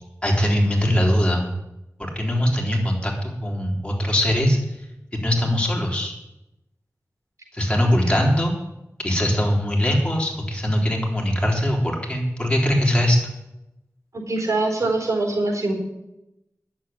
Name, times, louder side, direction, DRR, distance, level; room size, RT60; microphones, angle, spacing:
voice 1, 0.2-1.5 2.2-4.8 5.1-6.1 7.5-8.6 9.0-13.2, equal, 20° left, 0 dB, 3.7 m, -21 dB
voice 2, 14.1-15.7, right 2 dB, 70° right, 1 dB, 4.3 m, -23 dB
11.0 x 7.5 x 9.7 m, 0.91 s
wide cardioid pair, 70°, 6 cm